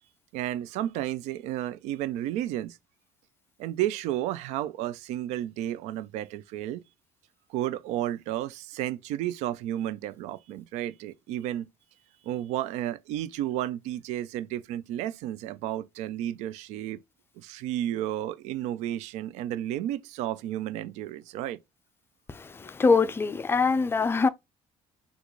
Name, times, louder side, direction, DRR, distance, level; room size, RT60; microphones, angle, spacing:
voice 1, 0.3-2.8 3.6-6.8 7.5-11.7 12.2-17.0 17.4-21.6, right 12 dB, 90° right, 0.4 m, -32 dB
voice 2, 22.3-24.3, left 4 dB, 20° left, 0.4 m, -24 dB
3.8 x 2.3 x 3.0 m
cardioid pair, 110°, 11 cm